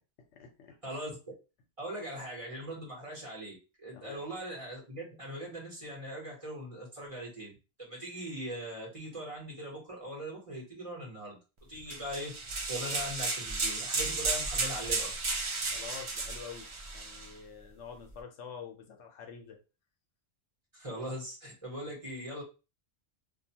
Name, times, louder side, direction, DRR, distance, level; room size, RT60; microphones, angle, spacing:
voice 1, 0.3-0.8 3.9-4.2 11.7-11.8 15.6-19.6, left 7 dB, 85° left, 3 dB, 1.0 m, -47 dB
voice 2, 0.8-1.2 1.8-11.4 11.7-12.4 12.6-15.1 20.7-22.4, right 1 dB, 30° right, -4 dB, 1.1 m, -40 dB
sound 1, 11.9-17.3, right 3 dB, 50° right, 0.3 m, -33 dB
2.6 x 2.2 x 2.7 m, 0.30 s
omnidirectional pair, 1.2 m